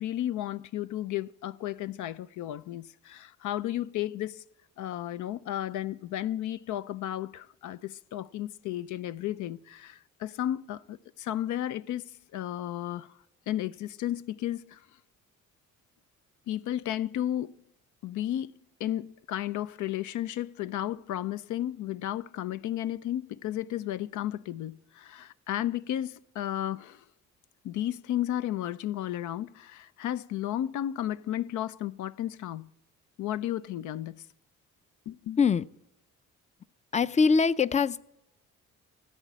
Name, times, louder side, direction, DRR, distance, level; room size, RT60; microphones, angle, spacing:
voice 1, 0.0-4.4 4.8-13.1 13.5-14.9 16.5-17.5 18.0-27.0 27.6-32.7 33.2-34.3 35.1-35.4, left 12 dB, 75° left, 0.5 m, -33 dB
voice 2, 36.9-38.0, left 5 dB, 25° left, 0.4 m, -23 dB
15.0 x 8.2 x 8.5 m
cardioid pair, 90°, 30 cm